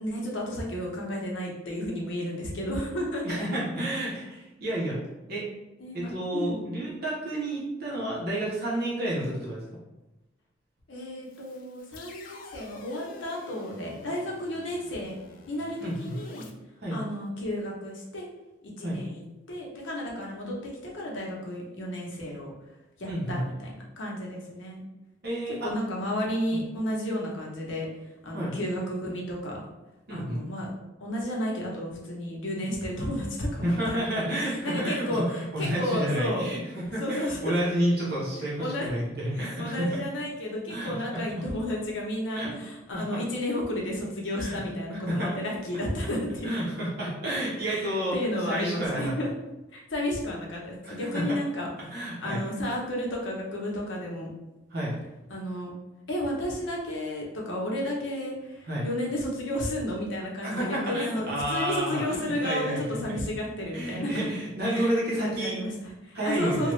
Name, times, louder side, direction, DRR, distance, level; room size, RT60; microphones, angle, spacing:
voice 1, 0.0-3.4 5.8-6.6 10.9-15.1 15.5-16.5 16.9-18.3 18.8-22.5 23.0-24.9 25.6-27.9 28.2-29.6 30.1-30.7 31.0-36.5 37.0-37.6 38.6-38.9 39.3-46.5 47.6-49.3 49.7-51.7 52.2-54.3 55.3-55.7 56.1-64.1 64.7-66.7, left 1 dB, 85° left, -2 dB, 0.8 m, -32 dB
voice 2, 3.2-5.0 5.3-5.4 5.9-9.6 15.8-16.1 16.8-17.0 18.8-19.0 23.1-23.4 25.2-25.7 26.5-26.6 28.3-28.5 30.1-30.4 32.6-32.7 33.6-39.9 40.7-41.2 42.4-42.5 42.9-43.2 44.4-44.6 45.1-45.3 46.4-48.2 48.4-49.1 50.8-51.2 51.9-52.4 54.7-54.9 58.7-58.8 60.4-63.2 63.7-65.6 66.1-66.7, right 1 dB, 55° right, -6 dB, 0.9 m, -30 dB
sound 1, 11.2-16.5, left 3 dB, 45° left, 0.3 m, -49 dB
2.9 x 2.2 x 3.1 m, 1.0 s
head